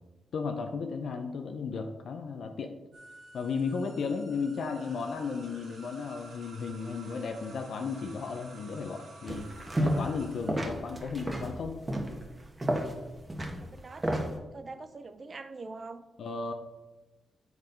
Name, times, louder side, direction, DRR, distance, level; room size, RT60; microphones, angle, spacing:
voice 1, 0.3-2.8 3.3-9.5 9.8-11.8 16.2-16.5, left 5 dB, 70° left, 5 dB, 0.6 m, -34 dB
sound 1, 2.9-11.9, right 3 dB, 70° right, 2.1 m, -52 dB
sound 2, 9.3-10.2 10.5-14.4, equal, 25° right, 1.3 m, -31 dB
voice 2, 13.6-16.0, right 3 dB, 45° right, 10 dB, 0.5 m, -44 dB
7.5 x 4.7 x 5.3 m, 1.1 s
cardioid pair, 60°, 0 cm